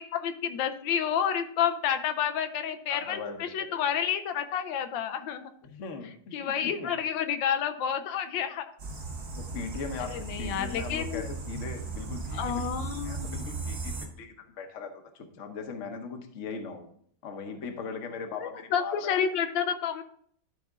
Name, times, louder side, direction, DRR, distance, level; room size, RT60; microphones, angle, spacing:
voice 1, 0.0-5.5 6.3-8.7 10.1-11.3 12.3-13.4 18.4-20.0, left 8 dB, 85° left, 9 dB, 1.3 m, -30 dB
voice 2, 2.9-3.8 5.6-6.9 9.4-12.7 13.0-16.9 17.2-19.2, left 5 dB, 50° left, 6 dB, 1.1 m, -39 dB
sound 1, 8.8-14.1, right 3 dB, 55° right, 2.0 m, -36 dB
12.5 x 4.2 x 3.5 m, 0.62 s
omnidirectional pair, 2.0 m